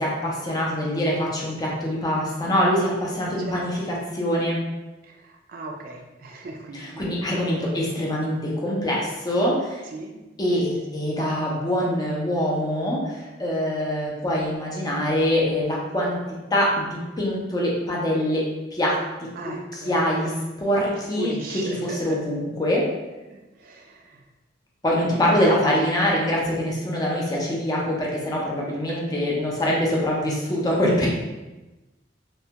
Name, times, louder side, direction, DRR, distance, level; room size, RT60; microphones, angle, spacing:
voice 1, 0.0-4.6 6.7-9.8 10.4-16.2 16.5-18.4 18.7-19.3 19.9-20.3 20.6-21.3 22.0-22.9 24.8-31.1, equal, 20° left, -3 dB, 0.4 m, -24 dB
voice 2, 5.0-7.1 7.5-7.8 9.9-10.2 19.4-20.3 21.2-22.0 23.3-24.2 24.8-25.4 28.7-29.3, right 2 dB, 50° right, 1 dB, 0.3 m, -38 dB
2.2 x 2.1 x 2.7 m, 1.1 s
head